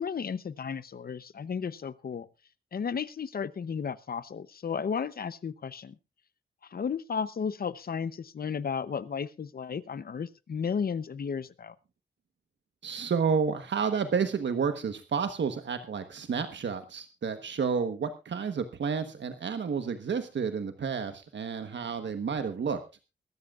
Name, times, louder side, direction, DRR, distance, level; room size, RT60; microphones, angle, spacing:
voice 1, 0.0-2.3 2.7-6.0 6.6-11.7, left 6 dB, 55° left, 16 dB, 0.7 m, -34 dB
voice 2, 12.8-22.8, right 6 dB, 80° right, 8 dB, 1.2 m, -30 dB
22.5 x 13.0 x 2.4 m, 0.28 s
wide cardioid pair, 170°, 19 cm